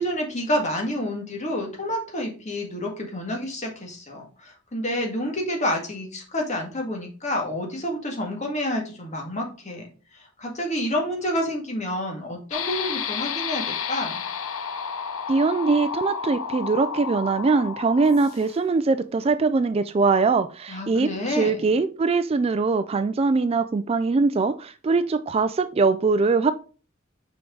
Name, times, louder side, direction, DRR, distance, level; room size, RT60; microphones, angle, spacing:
voice 1, 0.0-14.2 20.7-21.7, left 1 dB, 35° left, 1 dB, 1.8 m, -29 dB
sound 1, 12.5-18.6, left 6 dB, 90° left, 0.7 m, -31 dB
voice 2, 15.3-26.5, right 4 dB, 30° right, 12 dB, 0.3 m, -22 dB
6.1 x 4.6 x 3.7 m, 0.37 s
head